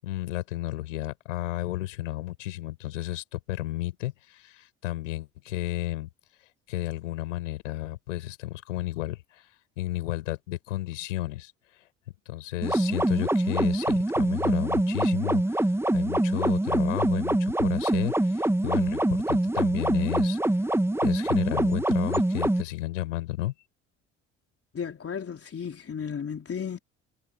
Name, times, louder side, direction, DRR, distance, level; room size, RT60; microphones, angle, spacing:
voice 1, 0.0-6.1 6.7-9.5 9.8-11.5 12.2-20.6 21.0-23.5, left 16 dB, 85° left, 6.7 m, -32 dB
sound 1, 12.6-22.6, right 1 dB, 5° right, 1.4 m, -24 dB
voice 2, 24.7-26.8, left 7 dB, 40° left, 3.9 m, -34 dB
hypercardioid pair, 55°, 37 cm